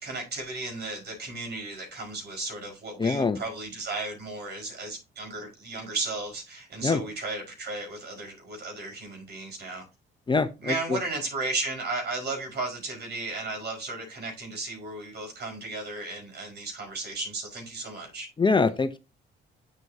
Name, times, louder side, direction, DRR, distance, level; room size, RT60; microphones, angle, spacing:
voice 1, 0.0-9.8 10.6-18.3, right 3 dB, 55° right, 5.1 m, -34 dB
voice 2, 3.0-3.4 6.8-7.0 10.3-11.0 18.4-19.0, left 4 dB, 25° left, 0.8 m, -24 dB
8.0 x 7.8 x 2.8 m
cardioid pair, 90°, 20 cm